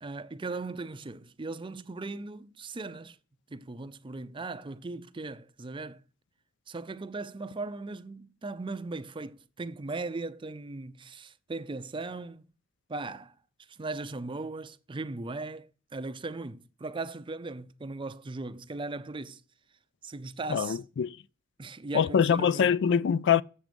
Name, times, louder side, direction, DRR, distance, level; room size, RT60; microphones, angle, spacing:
voice 1, 0.0-3.2 3.5-6.0 6.7-12.5 12.9-13.3 13.7-19.4 20.0-20.8 21.6-22.7, right 3 dB, 25° right, 0.5 m, -38 dB
voice 2, 20.5-21.2 21.9-23.4, left 7 dB, 60° left, 0.3 m, -24 dB
7.7 x 7.0 x 5.1 m
head